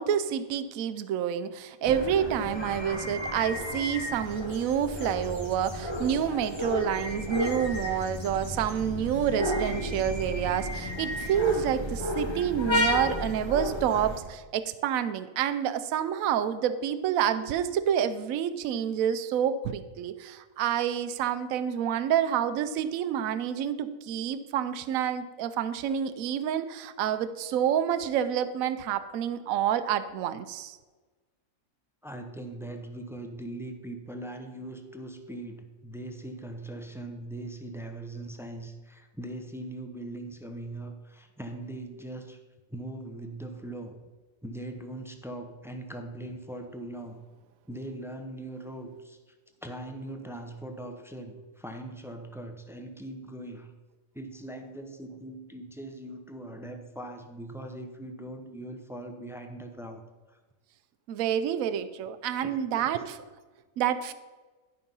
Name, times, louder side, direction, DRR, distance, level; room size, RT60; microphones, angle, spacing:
voice 1, 0.0-30.8 61.1-63.2 63.8-64.1, right 9 dB, 75° right, 12 dB, 1.0 m, -28 dB
sound 1, 1.8-14.2, left 1 dB, 20° left, 1.1 m, -32 dB
voice 2, 32.0-42.4 42.7-44.0 44.4-47.2 47.7-49.3 49.6-53.7 54.1-60.0 60.3-60.4 62.4-62.9, right 1 dB, 5° right, 5 dB, 0.5 m, -40 dB
11.5 x 5.5 x 5.4 m, 1.3 s
omnidirectional pair, 1.5 m